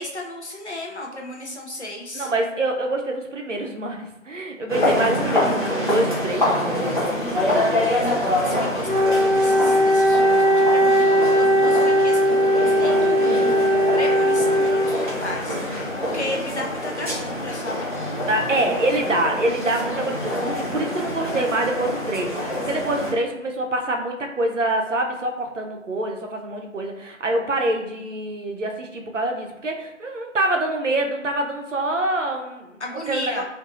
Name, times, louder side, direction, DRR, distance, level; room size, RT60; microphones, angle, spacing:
voice 1, 0.0-2.3 7.7-13.5 13.9-17.9 32.8-33.4, left 1 dB, 60° left, 0 dB, 0.6 m, -34 dB
voice 2, 2.1-7.9 13.2-13.6 18.3-33.4, right 1 dB, 70° right, 2 dB, 0.6 m, -26 dB
sound 1, 4.7-23.1, left 1 dB, 40° left, 0.9 m, -26 dB
Wind instrument woodwind instrument, 8.9-15.2, equal, 85° left, 1.0 m, -18 dB
2.5 x 2.4 x 2.6 m, 0.90 s
figure-of-eight pair, 175°, 39 cm